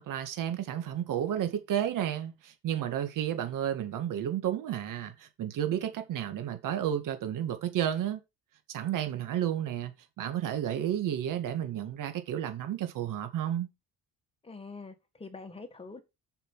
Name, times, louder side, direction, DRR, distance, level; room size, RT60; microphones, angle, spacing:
voice 1, 0.0-8.2 8.7-13.7, right 10 dB, 65° right, 1.9 m, -32 dB
voice 2, 14.4-16.0, left 3 dB, 15° left, 1.7 m, -45 dB
7.1 x 5.8 x 5.6 m
cardioid pair, 140°, 34 cm